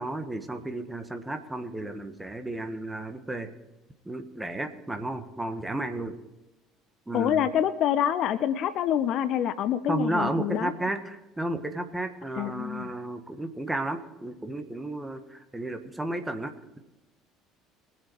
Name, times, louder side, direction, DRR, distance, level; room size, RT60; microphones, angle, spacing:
voice 1, 0.0-3.5 4.0-6.1 7.1-7.5 9.9-16.8, right 2 dB, 10° right, 7 dB, 1.7 m, -33 dB
voice 2, 7.1-10.7 12.4-12.9, left 10 dB, 55° left, 15 dB, 0.6 m, -26 dB
23.0 x 8.0 x 4.8 m, 1.0 s
figure-of-eight pair, 60°, 0 cm